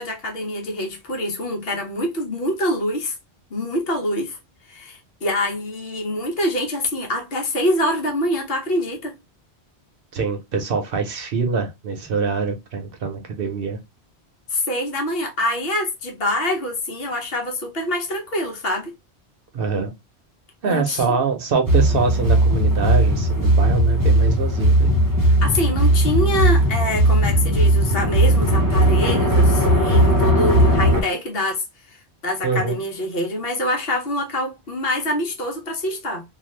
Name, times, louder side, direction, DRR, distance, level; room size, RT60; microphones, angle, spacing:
voice 1, 0.0-3.1 3.5-4.4 4.7-9.2 14.5-18.9 20.6-21.0 25.4-36.2, left 1 dB, 60° left, 1.1 m, -25 dB
voice 2, 10.1-13.8 19.5-19.9 20.6-25.0 32.4-32.8, right 5 dB, 60° right, 0.9 m, -24 dB
sound 1, 21.6-31.0, right 1 dB, 25° right, 0.6 m, -17 dB
2.6 x 2.4 x 3.1 m
omnidirectional pair, 1.1 m